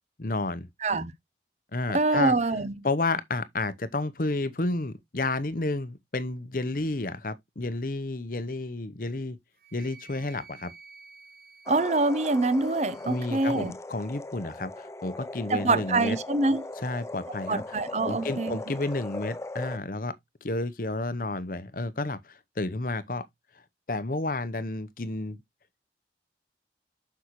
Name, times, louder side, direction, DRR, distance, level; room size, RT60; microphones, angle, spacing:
voice 1, 0.2-0.7 1.7-2.3 2.8-9.4 9.7-10.7 13.1-16.2 16.8-17.6 18.0-20.1 20.4-23.3 23.9-25.4, left 2 dB, 50° left, 0.8 m, -31 dB
voice 2, 0.8-1.1 1.9-2.9 11.7-13.7 15.5-16.6 17.5-18.6, right 2 dB, 40° right, 0.7 m, -25 dB
Wind instrument woodwind instrument, 9.6-13.7, right 4 dB, 55° right, 3.4 m, -53 dB
sound 1, 11.7-19.8, left 2 dB, 15° left, 0.4 m, -39 dB
8.1 x 6.3 x 3.1 m
head